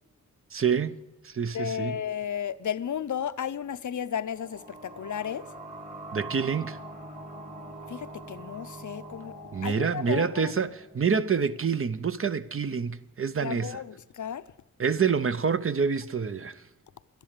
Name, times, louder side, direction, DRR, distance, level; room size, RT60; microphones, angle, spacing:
voice 1, 0.5-0.9 1.2-2.0 6.1-6.8 9.5-13.8 14.8-16.6, right 6 dB, 40° right, 0.6 m, -27 dB
voice 2, 1.5-5.5 7.9-9.3 9.6-10.5 13.4-14.4, left 8 dB, 60° left, 0.6 m, -33 dB
sound 1, 4.0-11.5, right 1 dB, 25° right, 1.7 m, -44 dB
12.0 x 10.5 x 6.6 m
wide cardioid pair, 80°, 33 cm